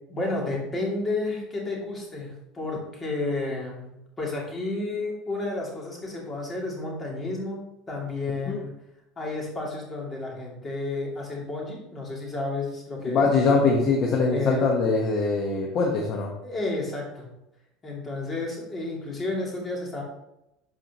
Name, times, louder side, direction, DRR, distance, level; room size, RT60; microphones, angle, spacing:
voice 1, 0.1-8.8 9.2-13.3 14.3-14.6 16.4-17.3 17.8-20.0, left 2 dB, 20° left, -2 dB, 2.6 m, -31 dB
voice 2, 13.0-16.3, left 4 dB, 50° left, -1 dB, 1.2 m, -22 dB
12.0 x 4.7 x 3.0 m, 0.88 s
supercardioid pair, 135°, 0 cm